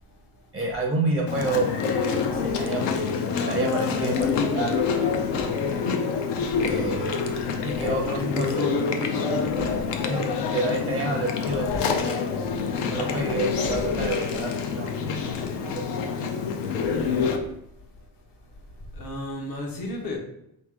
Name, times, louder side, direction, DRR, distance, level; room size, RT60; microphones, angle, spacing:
voice 1, 0.5-1.7 2.0-2.9 3.5-5.6 6.5-7.2 7.6-8.7 10.1-12.2 12.8-15.3 15.6-15.9, right 2 dB, 15° right, 1 dB, 0.4 m, -29 dB
Chewing mastication, 1.3-17.4, left 5 dB, 75° left, 0.7 m, -26 dB
voice 2, 16.8-17.3 18.9-20.2, left 1 dB, 55° left, 0 dB, 1.1 m, -33 dB
3.8 x 3.1 x 3.6 m, 0.78 s
cardioid pair, 135°, 43 cm